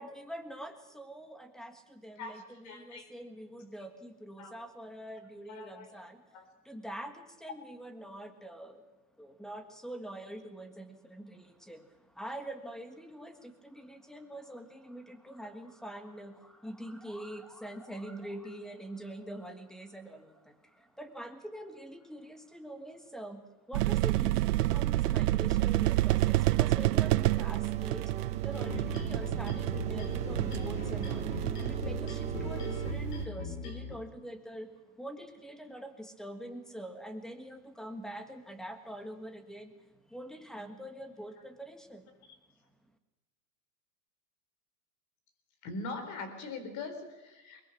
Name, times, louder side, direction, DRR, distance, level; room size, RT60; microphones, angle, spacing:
voice 1, 0.0-6.2 6.6-8.8 9.2-42.1, right 1 dB, ahead, 8 dB, 1.5 m, -45 dB
voice 2, 2.2-3.1 4.4-4.6 5.5-5.9 6.3-6.4 45.6-47.6, left 3 dB, 40° left, 8 dB, 4.2 m, -42 dB
sound 1, 23.7-33.3, right 16 dB, 90° right, 0.6 m, -29 dB
sound 2, 26.0-32.9, right 7 dB, 15° right, 0.8 m, -43 dB
sound 3, 28.5-33.9, left 4 dB, 80° left, 5.0 m, -40 dB
22.0 x 20.5 x 6.0 m, 1.1 s
supercardioid pair, 135°, 45 cm